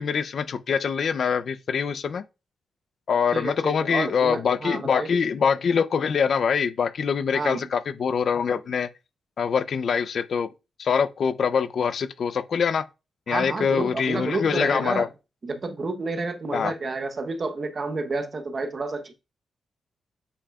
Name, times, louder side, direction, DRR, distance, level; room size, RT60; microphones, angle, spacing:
voice 1, 0.0-2.2 3.1-8.9 9.4-10.5 10.8-12.8 13.3-15.1 16.5-16.7, left 6 dB, 60° left, 0.5 m, -24 dB
voice 2, 3.3-5.1 7.3-7.7 13.3-15.1 15.4-19.1, right 3 dB, 45° right, 1.0 m, -30 dB
8.3 x 5.5 x 2.4 m
cardioid pair, 90°, 0 cm